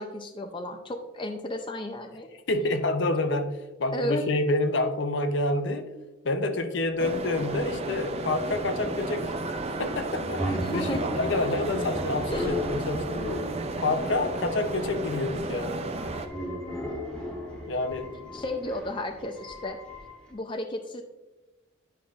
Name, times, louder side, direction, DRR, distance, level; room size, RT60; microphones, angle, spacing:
voice 1, 0.0-2.3 3.9-4.2 10.6-11.0 12.3-12.5 18.3-19.8 20.3-21.0, left 1 dB, 25° left, 4 dB, 0.5 m, -33 dB
voice 2, 2.5-3.5 3.8-5.9 6.2-9.3 9.8-13.0 13.8-15.8 17.7-18.3, left 2 dB, 65° left, 7 dB, 0.7 m, -28 dB
sound 1, 7.0-16.3, right 2 dB, 30° right, 0.5 m, -33 dB
sound 2, 7.7-20.3, left 1 dB, 5° left, 1.5 m, -36 dB
10.5 x 5.5 x 2.5 m, 1.1 s
head